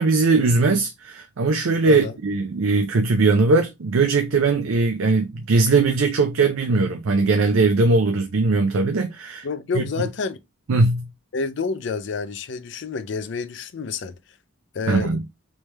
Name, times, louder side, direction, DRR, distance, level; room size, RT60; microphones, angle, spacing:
voice 1, 0.0-9.5 9.7-9.9 10.7-11.1 14.9-15.2, right 3 dB, 80° right, 0.5 m, -20 dB
voice 2, 9.4-10.4 11.3-14.1 14.7-15.2, left 4 dB, 55° left, 0.4 m, -28 dB
3.2 x 3.2 x 3.2 m
head